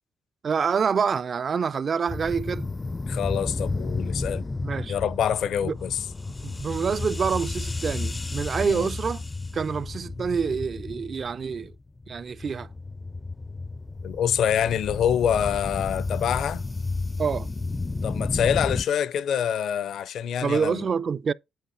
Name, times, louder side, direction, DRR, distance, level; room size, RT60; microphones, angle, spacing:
voice 1, 0.4-2.7 4.6-5.0 5.6-5.7 6.4-9.2 9.5-11.7 12.1-12.7 17.2-17.5 20.4-21.3, right 6 dB, 45° right, 0.4 m, -27 dB
sound 1, 2.1-18.8, left 3 dB, 20° left, 0.4 m, -32 dB
voice 2, 3.1-4.5 4.9-6.0 8.6-8.9 14.0-16.6 18.0-20.9, left 9 dB, 70° left, 0.5 m, -26 dB
9.2 x 4.8 x 4.4 m
cardioid pair, 90°, 0 cm